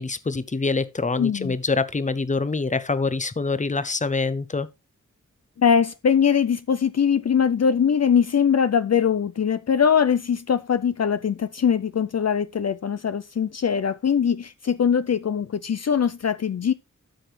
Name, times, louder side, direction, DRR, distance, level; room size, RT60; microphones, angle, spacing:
voice 1, 0.0-4.7, left 3 dB, 25° left, 0.7 m, -25 dB
voice 2, 1.2-1.6 5.6-16.7, left 7 dB, 55° left, 0.5 m, -22 dB
13.0 x 6.0 x 3.2 m
wide cardioid pair, 85°, 31 cm